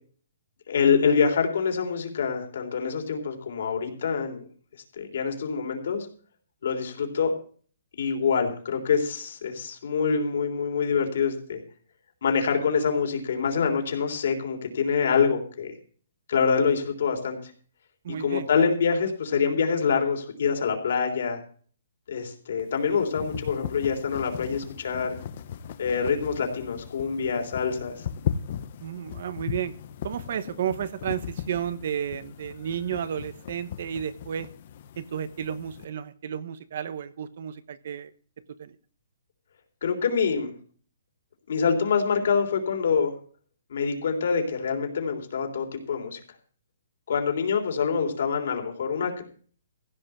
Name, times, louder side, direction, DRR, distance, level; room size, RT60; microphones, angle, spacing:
voice 1, 0.7-4.4 5.0-6.1 6.6-7.3 8.0-11.6 12.2-15.7 16.3-17.5 18.2-21.4 22.1-25.2 25.8-28.1 39.8-40.5 41.5-43.1 43.7-46.2 47.1-49.2, left 6 dB, 55° left, 3 dB, 3.5 m, -25 dB
voice 2, 18.0-18.5 28.8-29.7 30.0-34.5 35.0-38.1 38.6-38.8, right 9 dB, 45° right, 14 dB, 0.9 m, -32 dB
sound 1, 22.6-35.9, left 9 dB, 35° left, 0.8 m, -37 dB
15.5 x 5.6 x 8.2 m, 0.43 s
hypercardioid pair, 175°, 0 cm